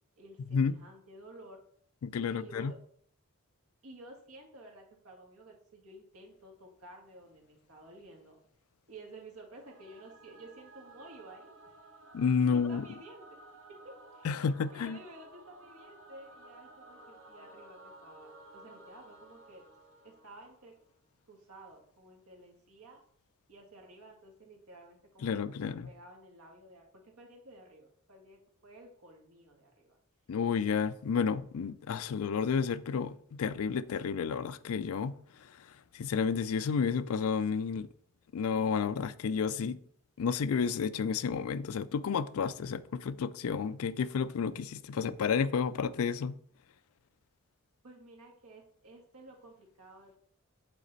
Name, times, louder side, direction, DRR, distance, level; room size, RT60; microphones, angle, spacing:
voice 1, 0.2-1.6 2.3-2.8 3.8-8.4 8.9-11.6 12.4-13.3 13.7-14.4 14.7-19.7 20.0-20.7 21.3-23.0 23.5-30.0 47.8-50.2, right 1 dB, 80° right, 1.8 m, -53 dB
voice 2, 2.0-2.7 12.1-12.9 14.2-15.0 25.2-25.9 30.3-35.2 35.9-37.9 38.3-39.8 40.2-46.4, left 6 dB, 80° left, 0.4 m, -31 dB
Singing / Musical instrument, 9.6-20.9, right 2 dB, 55° right, 0.9 m, -55 dB
8.2 x 4.1 x 4.0 m
head